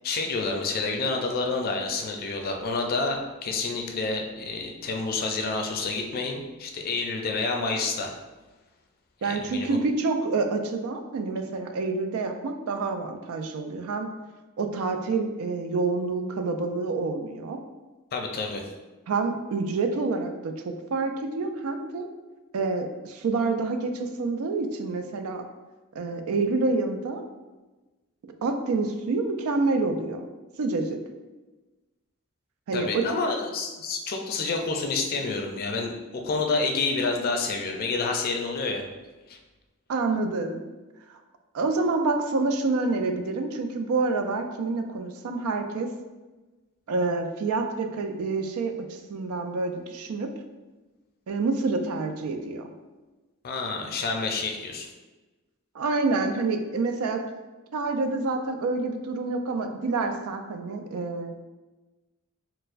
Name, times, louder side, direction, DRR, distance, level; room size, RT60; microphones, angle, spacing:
voice 1, 0.0-8.1 9.2-9.8 18.1-18.7 32.7-38.9 39.3-39.4 53.4-54.9, left 3 dB, 45° left, 2 dB, 0.4 m, -29 dB
voice 2, 9.2-14.1 14.6-17.6 19.1-22.1 22.5-25.4 26.0-27.2 28.4-30.3 30.6-31.0 32.7-33.0 39.9-40.6 41.1-41.2 41.5-45.9 46.9-50.3 51.3-52.7 55.7-57.2 57.7-61.3, right 3 dB, 80° right, 6 dB, 0.4 m, -27 dB
4.3 x 2.1 x 2.5 m, 1.2 s
head